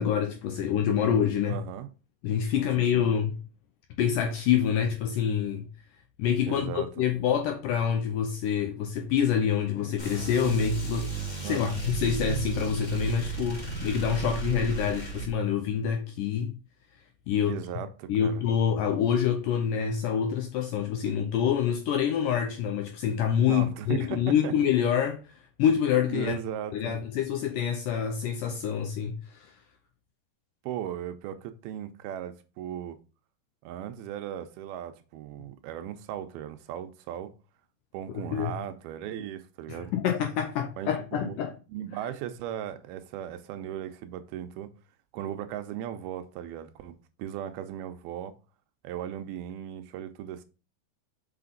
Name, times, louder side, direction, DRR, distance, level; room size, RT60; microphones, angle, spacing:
voice 1, 0.0-1.6 2.2-3.4 4.0-5.7 6.2-16.6 17.3-17.6 18.1-25.2 25.6-26.3 26.7-29.5 38.1-38.5 39.7-41.5, left 8 dB, 80° left, 1.9 m, -26 dB
voice 2, 1.5-1.9 2.6-3.1 6.5-7.1 11.4-11.8 17.4-18.5 23.4-24.6 26.1-27.0 30.6-33.0 33.6-37.3 37.9-39.9 40.8-41.4 41.7-44.7 45.1-48.4 48.8-50.4, right 10 dB, 85° right, 2.4 m, -37 dB
sound 1, 10.0-15.3, right 4 dB, 25° left, 0.9 m, -33 dB
5.9 x 5.8 x 3.8 m
omnidirectional pair, 4.6 m